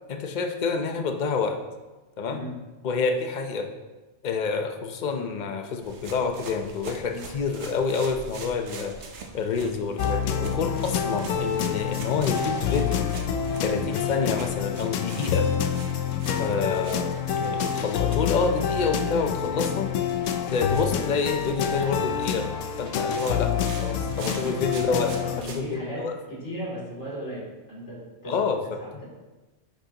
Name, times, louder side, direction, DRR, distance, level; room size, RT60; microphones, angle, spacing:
voice 1, 0.1-1.6 2.2-2.4 2.8-3.7 4.2-9.0 9.3-13.0 13.6-15.5 16.4-19.9 20.5-22.5 22.8-26.1 28.3-29.0, left 5 dB, 45° left, 5 dB, 0.8 m, -28 dB
sound 1, 5.8-25.6, right 4 dB, 65° right, 1.1 m, -44 dB
sound 2, 10.0-25.4, left 7 dB, 85° left, 1.0 m, -27 dB
voice 2, 24.2-27.4 27.7-28.3, right 1 dB, 70° left, -6 dB, 3.3 m, -37 dB
9.8 x 6.4 x 2.9 m, 1.2 s
omnidirectional pair, 1.3 m